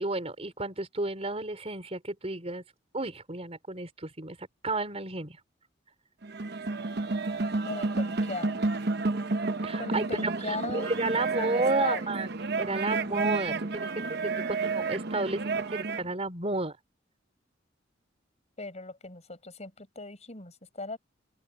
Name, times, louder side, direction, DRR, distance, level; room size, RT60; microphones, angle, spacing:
voice 1, 0.0-2.6 2.9-5.4 9.6-12.3 12.5-16.8, right 2 dB, 35° right, 4.3 m, -32 dB
sound 1, 6.2-16.1, right 3 dB, 60° right, 1.0 m, -31 dB
voice 2, 7.3-8.6 9.8-12.1 18.6-21.0, left 3 dB, 35° left, 6.7 m, -39 dB
open air
head